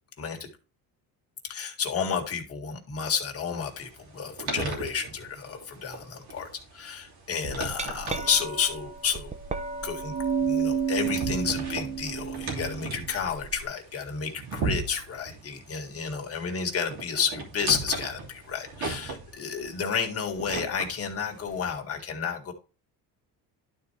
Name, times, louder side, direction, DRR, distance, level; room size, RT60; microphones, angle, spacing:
voice 1, 0.2-0.5 1.4-6.5 6.7-9.3 9.8-22.5, left 6 dB, 35° left, 2 dB, 1.9 m, -31 dB
sound 1, 3.5-21.8, right 4 dB, 70° right, 3.0 m, -38 dB
Glass, 7.5-13.6, right 6 dB, 20° right, 0.5 m, -31 dB
11.5 x 4.4 x 3.3 m, 0.33 s
cardioid pair, 130°, 39 cm